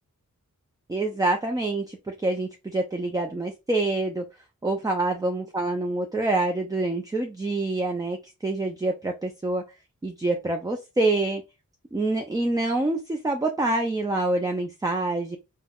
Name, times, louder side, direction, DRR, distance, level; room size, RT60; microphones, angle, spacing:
voice 1, 0.9-4.2 4.6-8.2 8.4-9.6 10.0-11.4 11.9-15.4, right 2 dB, 10° right, 4 dB, 0.3 m, -26 dB
3.3 x 2.1 x 2.3 m, 0.25 s
wide cardioid pair, 75°, 32 cm